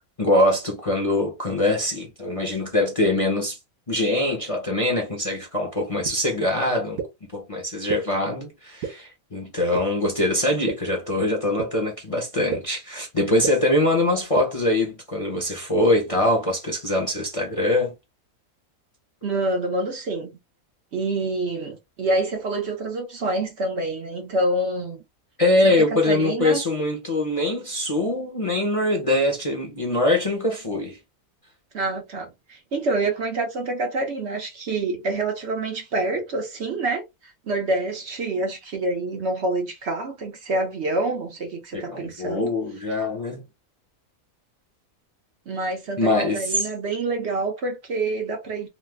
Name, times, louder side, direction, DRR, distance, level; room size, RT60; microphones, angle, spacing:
voice 1, 0.2-3.6 3.9-7.0 7.3-17.9 25.4-31.0 41.7-43.4 46.0-46.7, left 1 dB, 30° left, 0.7 m, -23 dB
sound 1, 6.0-6.1 7.0-7.1 7.9-8.0 8.8-8.9 9.7-9.8 10.7-10.8 11.6-11.7 12.5-12.6 13.4-13.5 14.4-14.5, right 7 dB, 85° right, 1.1 m, -27 dB
voice 2, 19.2-20.4 20.9-25.0 25.6-26.6 31.7-37.0 37.5-42.5 45.5-48.7, right 2 dB, 60° right, 0.9 m, -27 dB
3.1 x 2.0 x 3.4 m
omnidirectional pair, 1.5 m